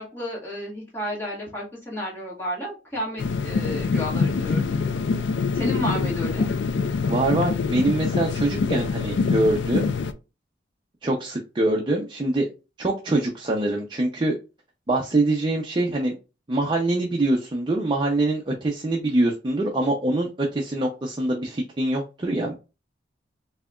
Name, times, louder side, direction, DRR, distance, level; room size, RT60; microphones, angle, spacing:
voice 1, 0.0-4.8 5.5-6.5, equal, 15° left, -6 dB, 1.8 m, -31 dB
sound 1, 3.2-10.1, left 4 dB, 75° left, 0.4 m, -25 dB
voice 2, 7.1-9.9 11.0-12.5 12.8-14.3 14.9-16.1 16.5-22.5, right 2 dB, 25° right, 0 dB, 0.5 m, -24 dB
4.6 x 2.8 x 2.3 m, 0.30 s
head